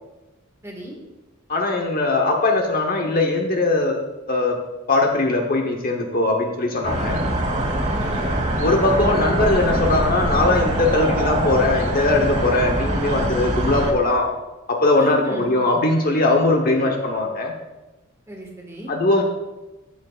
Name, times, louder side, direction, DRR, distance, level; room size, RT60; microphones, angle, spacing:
voice 1, 0.6-0.9 7.9-8.4 15.0-15.5 18.3-18.9, equal, 15° right, -1 dB, 1.8 m, -34 dB
voice 2, 1.5-4.0 4.3-4.6 4.9-7.2 8.6-14.3 14.7-17.5 18.9-19.2, left 2 dB, 45° left, 1 dB, 1.0 m, -20 dB
sound 1, 6.8-13.9, right 1 dB, 35° right, 1.4 m, -23 dB
11.5 x 8.0 x 2.5 m, 1.1 s
head